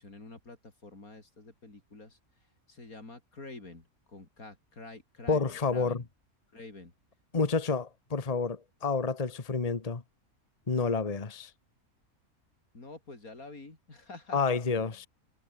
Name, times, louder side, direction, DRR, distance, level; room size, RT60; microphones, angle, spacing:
voice 1, 0.0-6.1 6.5-6.9 12.7-14.4 14.8-15.1, left 2 dB, 80° left, 5.1 m, -48 dB
voice 2, 5.3-6.0 7.3-10.0 10.7-11.5 14.3-15.1, left 4 dB, 25° left, 1.4 m, -29 dB
omnidirectional pair, 1.5 m